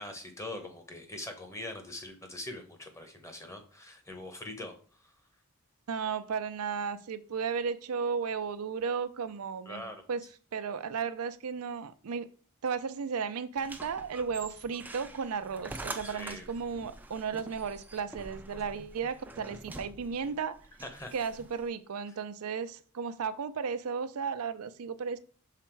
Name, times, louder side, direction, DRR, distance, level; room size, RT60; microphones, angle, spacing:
voice 1, 0.0-5.1 9.6-10.0 16.0-16.5 20.8-21.1, left 1 dB, 15° left, 0.9 m, -42 dB
voice 2, 5.9-10.2 10.5-12.3 12.6-20.7 21.1-25.2, right 6 dB, 90° right, 0.5 m, -34 dB
sound 1, 13.6-21.7, right 2 dB, 10° right, 0.4 m, -46 dB
5.9 x 4.1 x 4.5 m
head